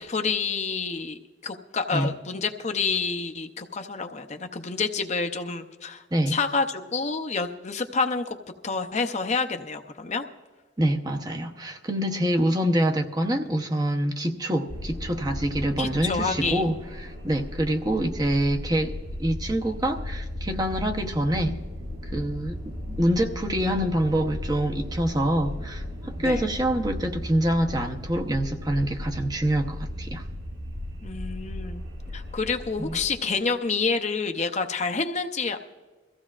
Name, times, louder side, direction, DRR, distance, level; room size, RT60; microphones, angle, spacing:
voice 1, 0.0-8.4 8.6-10.2 15.8-16.6 26.2-26.5 31.0-31.8 32.1-35.6, left 4 dB, 35° left, 0.6 m, -28 dB
voice 2, 10.8-21.6 22.1-30.2 32.8-33.0, right 1 dB, 20° right, 0.8 m, -26 dB
sound 1, 14.7-33.1, left 1 dB, 80° right, 3.7 m, -36 dB
22.5 x 15.0 x 2.4 m
head